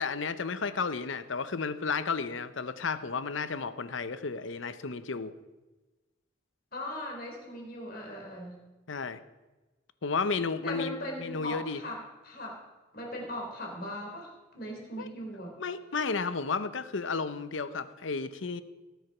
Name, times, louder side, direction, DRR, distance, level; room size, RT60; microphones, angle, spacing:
voice 1, 0.0-5.3 8.9-9.2 10.0-11.8 15.0-15.1 15.6-18.6, left 4 dB, 70° left, 13 dB, 0.7 m, -32 dB
voice 2, 6.7-8.6 10.6-12.6 12.9-15.6, left 1 dB, 50° left, 0 dB, 3.8 m, -39 dB
17.5 x 8.1 x 6.1 m, 1.2 s
head